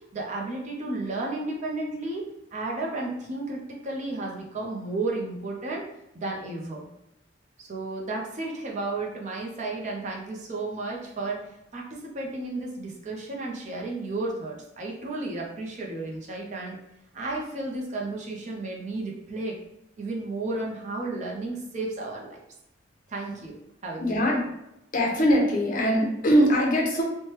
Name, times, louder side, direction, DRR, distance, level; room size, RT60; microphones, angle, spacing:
voice 1, 0.1-5.9 6.1-6.9 7.6-16.8 17.1-19.6 20.0-22.4 23.1-23.6 23.8-24.2, right 2 dB, 35° right, -1 dB, 0.5 m, -33 dB
voice 2, 24.0-24.5 24.9-27.0, equal, 40° left, 0 dB, 0.6 m, -22 dB
3.1 x 2.1 x 2.9 m, 0.85 s
head